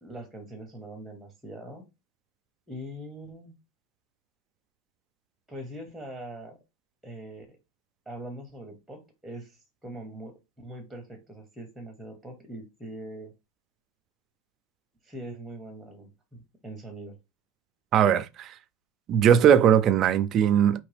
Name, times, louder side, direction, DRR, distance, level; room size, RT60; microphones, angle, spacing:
voice 1, 0.0-1.9 2.7-3.5 5.5-6.6 7.0-7.6 8.1-13.3 15.0-17.2, right 1 dB, ahead, 0.8 m, -42 dB
voice 2, 17.9-18.5 19.1-20.8, right 9 dB, 30° right, 0.3 m, -20 dB
4.9 x 3.0 x 3.3 m
supercardioid pair, 165°, 0 cm